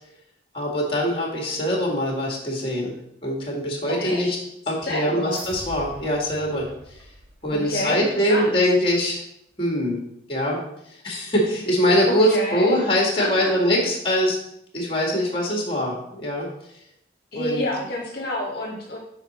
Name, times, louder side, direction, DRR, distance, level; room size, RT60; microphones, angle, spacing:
voice 1, 0.5-2.9 3.2-4.4 4.7-6.7 6.9-7.0 7.4-9.2 9.6-10.0 10.3-14.4 14.7-16.5 17.3-17.6, equal, 30° left, 0 dB, 1.6 m, -23 dB
voice 2, 3.8-4.3 4.8-5.4 7.5-8.6 12.1-13.5 17.3-19.0, left 1 dB, 55° left, -2 dB, 1.2 m, -29 dB
sound 1, 5.3-8.0, right 1 dB, 85° right, 1.4 m, -43 dB
6.4 x 5.0 x 4.1 m, 0.75 s
head